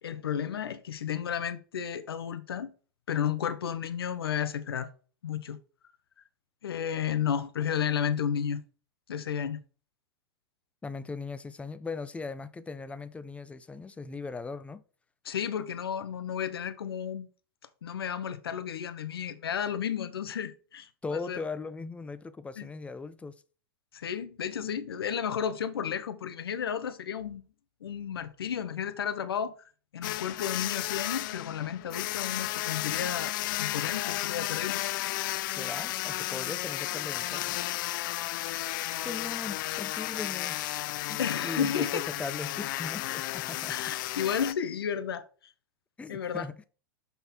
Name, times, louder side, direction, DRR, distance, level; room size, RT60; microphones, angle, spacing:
voice 1, 0.0-2.7 3.1-4.9 5.2-5.6 6.6-8.6 9.1-9.6 15.2-17.3 17.8-21.4 22.6-22.7 23.9-27.4 27.8-34.8 41.2-42.0 43.7-45.3 46.1-46.5, left 8 dB, 85° left, 0.9 m, -32 dB
voice 2, 10.8-14.8 21.0-23.4 35.5-37.6 39.0-40.6 41.1-43.7 46.0-46.6, left 4 dB, 10° left, 0.6 m, -39 dB
sound 1, 30.0-44.5, left 17 dB, 60° left, 0.4 m, -33 dB
5.9 x 5.5 x 4.2 m
hypercardioid pair, 115°, 12 cm